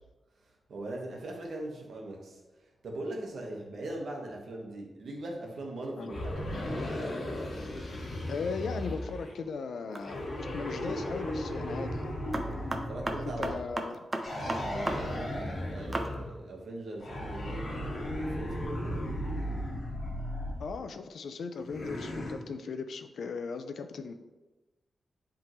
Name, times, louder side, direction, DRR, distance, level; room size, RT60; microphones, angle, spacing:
voice 1, 0.4-6.7 12.9-13.6 14.3-19.2, right 1 dB, 70° right, 0 dB, 1.3 m, -41 dB
sound 1, 6.1-9.4 10.0-13.7 14.2-16.4 17.0-20.7 21.6-22.3, left 1 dB, 50° left, 1.4 m, -36 dB
voice 2, 8.3-10.3 10.5-12.1 13.2-14.0 20.6-24.1, left 5 dB, 85° left, 8 dB, 0.5 m, -37 dB
sound 2, 9.9-10.3 12.3-15.0 15.3-15.4 15.9-16.1, right 2 dB, 25° right, 0.6 m, -33 dB
10.5 x 3.7 x 3.1 m, 1.1 s
wide cardioid pair, 145°, 0 cm